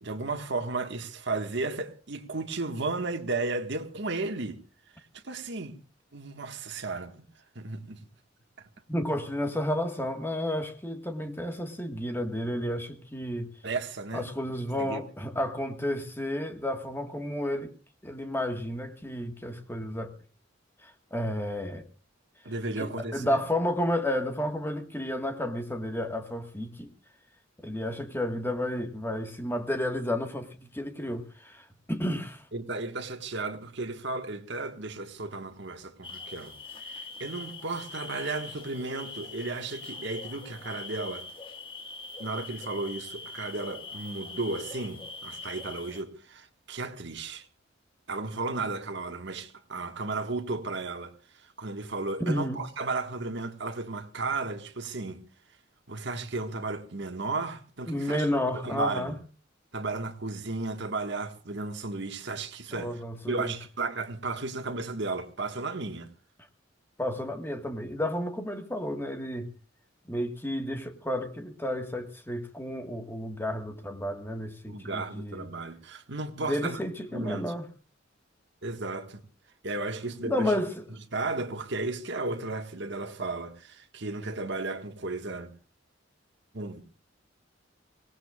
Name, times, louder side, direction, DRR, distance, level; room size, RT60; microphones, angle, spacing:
voice 1, 0.0-4.6 5.2-5.8 6.1-7.1 7.5-8.0 13.6-14.3 14.8-15.0 22.4-23.4 32.5-36.5 36.8-41.3 42.2-47.4 48.1-51.1 51.6-55.2 55.9-59.2 59.7-62.9 63.3-66.1 74.7-76.8 77.1-77.5 78.6-79.2 79.6-80.5 81.1-85.5 86.5-86.8, right 3 dB, 65° right, 1.6 m, -34 dB
voice 2, 8.9-13.5 14.1-17.7 18.0-20.1 20.8-21.9 22.8-26.9 27.6-32.4 52.2-52.6 57.9-59.2 62.7-63.6 67.0-69.5 70.1-75.5 76.4-77.7 80.2-80.8, left 1 dB, 10° left, 1.6 m, -31 dB
sound 1, 36.0-46.0, left 3 dB, 30° left, 1.7 m, -43 dB
24.5 x 18.5 x 2.4 m
head